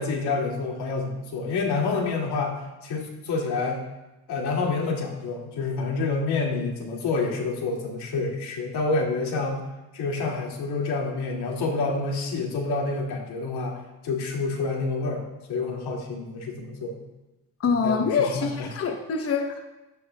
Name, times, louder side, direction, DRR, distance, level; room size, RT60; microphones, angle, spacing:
voice 1, 0.0-3.8 4.3-9.6 9.9-13.8 14.0-17.0 17.7-18.7, left 3 dB, 75° left, 0 dB, 2.4 m, -28 dB
voice 2, 17.6-19.7, left 5 dB, 35° left, 5 dB, 0.9 m, -25 dB
15.0 x 11.0 x 2.3 m, 1.0 s
supercardioid pair, 75°, 39 cm